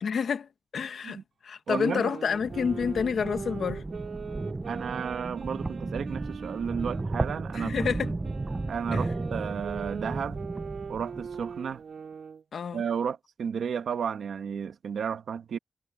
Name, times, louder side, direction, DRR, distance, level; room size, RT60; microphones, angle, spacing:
voice 1, 0.0-3.8 7.5-8.1 8.9-9.0 12.5-12.8, left 6 dB, 70° left, 1.4 m, -29 dB
sound 1, 1.7-7.1 7.5-12.4, right 6 dB, 65° right, 3.1 m, -41 dB
voice 2, 1.7-2.1 4.7-7.9 8.7-10.4 10.9-11.8 12.7-15.6, right 7 dB, 85° right, 1.5 m, -33 dB
sound 2, 2.3-11.5, right 2 dB, 25° right, 0.6 m, -34 dB
wide cardioid pair, 125°, 0 cm